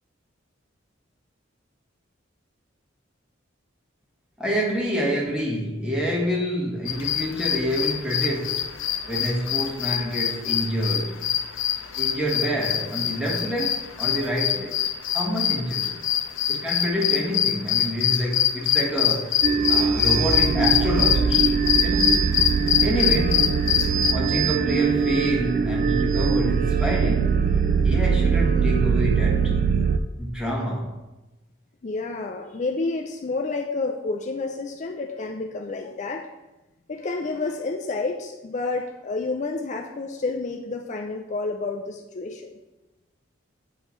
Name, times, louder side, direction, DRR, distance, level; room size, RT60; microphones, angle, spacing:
voice 1, 4.4-8.7 9.1-11.2 12.0-14.8 15.1-16.0 16.5-19.4 19.7-21.4 21.8-22.2 22.8-23.5 24.1-27.3 27.8-29.5 30.2-30.9, equal, 5° right, -3 dB, 1.4 m, -27 dB
sound 1, 6.9-24.1, left 10 dB, 90° left, 0.5 m, -24 dB
sound 2, 19.4-30.0, right 6 dB, 45° right, 0.3 m, -22 dB
voice 2, 31.8-36.3 36.9-42.5, left 3 dB, 40° left, 2 dB, 0.4 m, -29 dB
8.9 x 5.4 x 3.1 m, 1.0 s
head